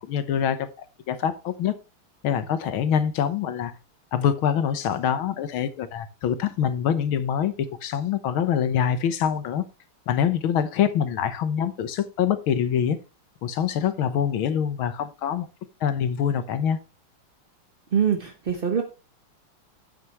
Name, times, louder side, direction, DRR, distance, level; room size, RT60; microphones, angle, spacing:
voice 1, 0.0-1.8 2.2-3.7 4.1-9.6 10.1-13.0 13.4-15.5 15.8-16.8, left 8 dB, 70° left, 11 dB, 1.7 m, -25 dB
voice 2, 17.9-18.8, right 7 dB, 40° right, 4 dB, 0.8 m, -23 dB
9.5 x 9.3 x 3.0 m, 0.30 s
omnidirectional pair, 2.4 m